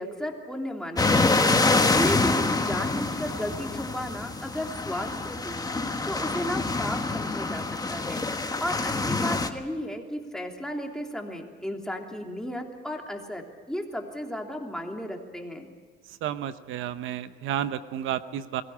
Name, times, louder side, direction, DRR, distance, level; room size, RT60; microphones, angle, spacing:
voice 1, 0.0-15.7, equal, 5° left, 1 dB, 3.2 m, -34 dB
sound 1, 1.0-9.5, left 3 dB, 20° left, 1.5 m, -26 dB
voice 2, 16.2-18.6, right 10 dB, 90° right, 12 dB, 0.9 m, -31 dB
22.5 x 16.5 x 9.9 m, 1.5 s
cardioid pair, 90°, 20 cm